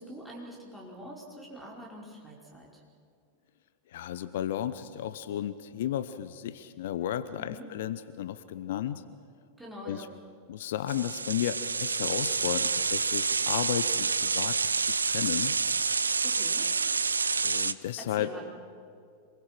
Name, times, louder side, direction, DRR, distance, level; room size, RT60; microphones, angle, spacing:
voice 1, 0.0-2.8 7.4-7.7 9.6-10.1 16.2-16.7 18.0-18.4, equal, 5° right, -4 dB, 5.0 m, -45 dB
voice 2, 3.9-9.0 9.8-10.1 10.5-15.6 17.4-18.3, left 11 dB, 55° left, 14 dB, 0.7 m, -33 dB
sound 1, 10.9-17.7, right 4 dB, 75° right, 0.6 m, -28 dB
26.5 x 21.5 x 6.1 m, 2.3 s
figure-of-eight pair, 90°, 0 cm